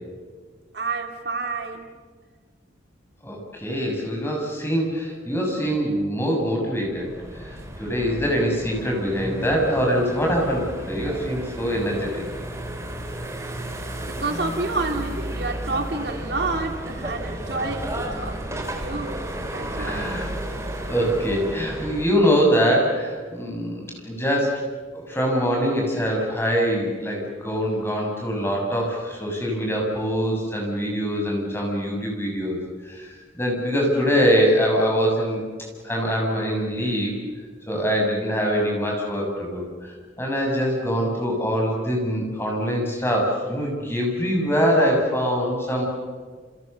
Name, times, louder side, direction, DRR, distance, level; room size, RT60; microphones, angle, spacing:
voice 1, 0.7-1.9 14.0-19.2 19.5-20.1, right 3 dB, 60° right, 4 dB, 2.5 m, -29 dB
voice 2, 3.2-7.1 7.4-12.3 19.8-20.3 20.9-24.6 24.9-32.6 32.9-35.4 35.8-37.1 37.7-45.8, equal, 10° left, -1 dB, 7.0 m, -23 dB
sound 1, 6.9-22.0, right 1 dB, 15° right, 3.4 m, -33 dB
29.0 x 28.5 x 6.9 m, 1.5 s
head